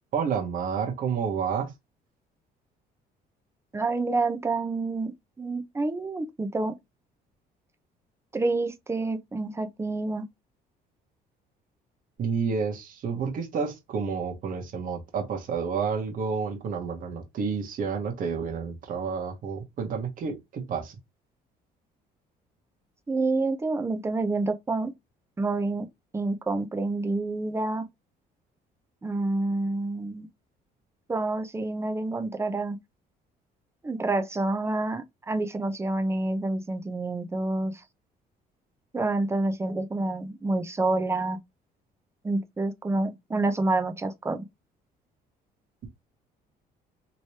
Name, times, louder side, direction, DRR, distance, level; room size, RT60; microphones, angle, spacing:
voice 1, 0.1-1.7 12.2-21.0, right 6 dB, 55° right, 1.1 m, -30 dB
voice 2, 3.7-5.1 5.4-6.8 8.3-10.3 23.1-24.9 25.4-25.9 26.1-27.9 29.0-30.3 31.1-32.8 33.8-37.7 38.9-41.4 42.2-44.4, right 2 dB, 15° right, 0.6 m, -28 dB
3.1 x 3.0 x 2.8 m
cardioid pair, 110°, 17 cm